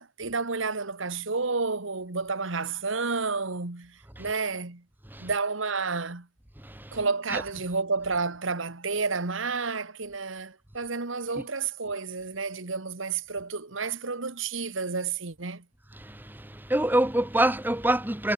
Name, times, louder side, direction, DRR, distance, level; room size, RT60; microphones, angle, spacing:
voice 1, 0.0-4.8 5.2-6.3 6.9-15.7, right 4 dB, 75° right, 1.7 m, -30 dB
voice 2, 6.6-7.0 7.3-7.4 11.3-11.4 15.9-18.3, right 1 dB, 10° right, 1.2 m, -27 dB
head